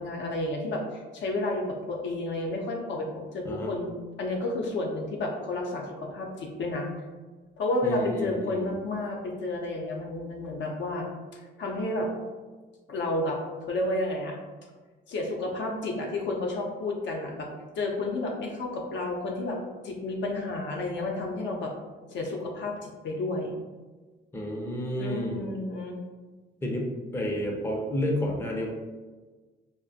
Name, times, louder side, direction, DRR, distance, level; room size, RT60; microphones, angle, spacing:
voice 1, 0.0-6.9 7.6-11.1 11.3-12.1 12.9-14.4 15.1-17.5 17.8-19.6 19.8-21.7 22.1-23.6 25.0-26.0, left 2 dB, 65° left, 0 dB, 0.5 m, -31 dB
voice 2, 7.8-8.7 24.3-25.5 26.6-26.9 27.1-28.7, equal, 10° left, 0 dB, 0.4 m, -30 dB
2.3 x 2.0 x 2.6 m, 1.3 s
cardioid pair, 90°, 20 cm